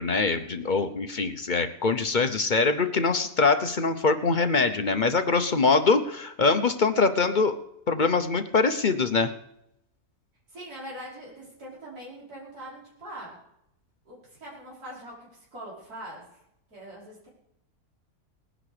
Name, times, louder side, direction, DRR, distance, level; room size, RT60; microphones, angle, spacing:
voice 1, 0.0-7.6 7.9-9.3, left 4 dB, 40° left, 8 dB, 0.7 m, -23 dB
voice 2, 10.5-13.3 14.1-16.4 16.7-17.3, right 1 dB, 75° right, -6 dB, 5.6 m, -42 dB
18.5 x 10.0 x 5.0 m, 0.80 s
omnidirectional pair, 1.6 m